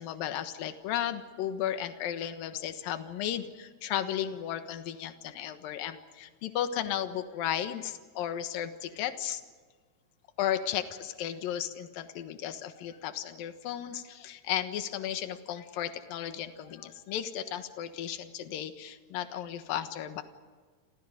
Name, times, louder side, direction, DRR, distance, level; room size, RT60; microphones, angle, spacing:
voice 1, 0.0-9.4 10.4-20.2, left 10 dB, 65° left, 9 dB, 2.4 m, -34 dB
29.0 x 28.5 x 5.1 m, 1.5 s
omnidirectional pair, 5.6 m